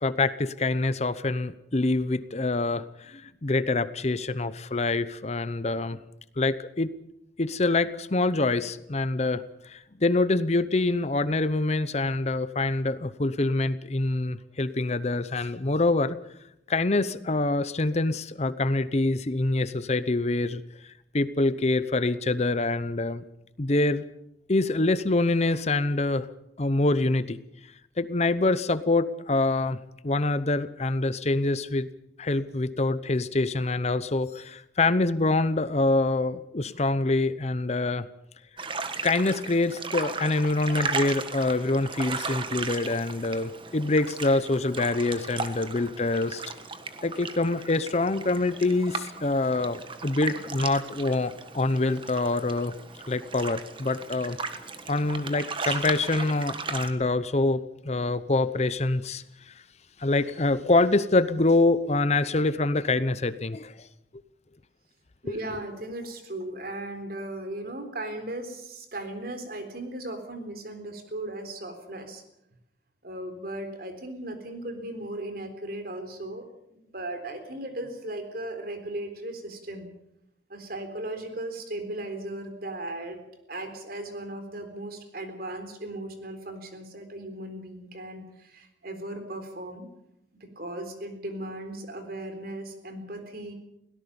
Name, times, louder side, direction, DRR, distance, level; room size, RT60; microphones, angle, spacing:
voice 1, 0.0-6.0 6.4-6.9 7.4-16.2 16.7-23.2 23.6-24.0 24.5-26.3 26.6-27.4 28.0-31.9 32.2-38.1 39.0-46.4 47.0-52.7 53.1-54.4 54.9-59.5 60.0-63.9 65.3-65.4, left 2 dB, 40° left, 14 dB, 0.8 m, -25 dB
sound 1, 38.6-56.9, right 4 dB, 30° right, 1.5 m, -36 dB
voice 2, 65.2-72.2 73.0-79.9 80.5-83.2 83.5-89.9 90.3-93.5, right 1 dB, 60° right, 7 dB, 3.8 m, -37 dB
23.0 x 17.5 x 7.1 m, 0.81 s
head